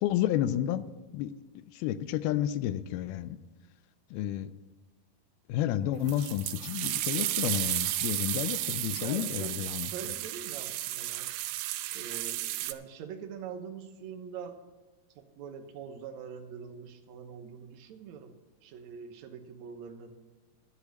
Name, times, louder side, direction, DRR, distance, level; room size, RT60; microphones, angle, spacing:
voice 1, 0.0-0.8 1.1-3.4 4.1-4.5 5.5-9.9, left 12 dB, 80° left, 14 dB, 2.4 m, -31 dB
sound 1, 6.1-12.7, right 15 dB, 85° right, 2.6 m, -33 dB
voice 2, 8.9-11.3 11.9-14.6 15.2-18.4 18.6-20.2, right 7 dB, 70° right, 5 dB, 1.8 m, -44 dB
12.0 x 8.3 x 6.4 m, 1.2 s
omnidirectional pair, 4.5 m